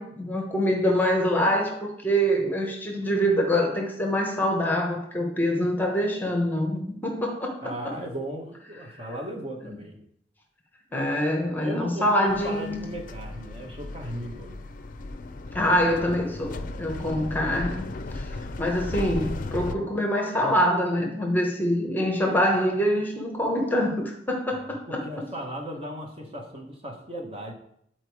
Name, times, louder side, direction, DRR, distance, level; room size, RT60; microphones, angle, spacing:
voice 1, 0.0-7.6 9.7-9.8 10.9-12.8 15.5-17.8 18.6-25.0, equal, 10° left, 1.1 m, -25 dB
voice 2, 7.6-10.0 11.6-14.6 24.5-24.6 24.9-27.5, right 1 dB, 35° right, 1.2 m, -36 dB
sound 1, 12.3-19.8, left 2 dB, 50° left, 0.5 m, -36 dB
8.9 x 4.5 x 4.7 m
head